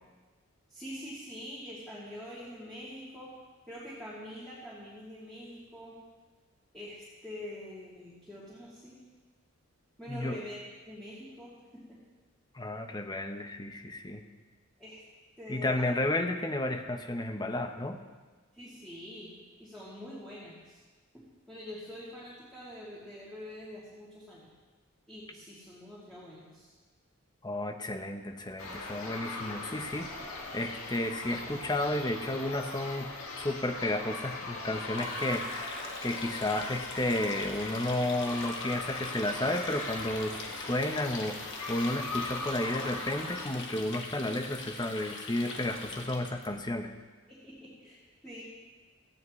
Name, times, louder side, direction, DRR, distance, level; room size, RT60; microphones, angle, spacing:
voice 1, 0.7-3.3 3.7-5.9 6.7-9.0 10.0-12.0 14.8-15.0 15.4-15.9 18.5-19.3 19.6-20.8 21.5-24.5 25.1-26.7 47.3-48.0 48.2-48.4, left 1 dB, ahead, -9 dB, 2.7 m, -45 dB
voice 2, 10.1-10.4 12.5-14.2 15.5-18.0 27.4-33.1 33.4-35.7 36.0-46.9, left 1 dB, 20° left, 6 dB, 0.8 m, -32 dB
sound 1, 28.6-43.5, left 2 dB, 90° left, 2.0 m, -40 dB
Water tap faucet, 34.9-46.5, left 3 dB, 60° left, 1.6 m, -43 dB
18.0 x 15.0 x 3.2 m, 1.4 s
head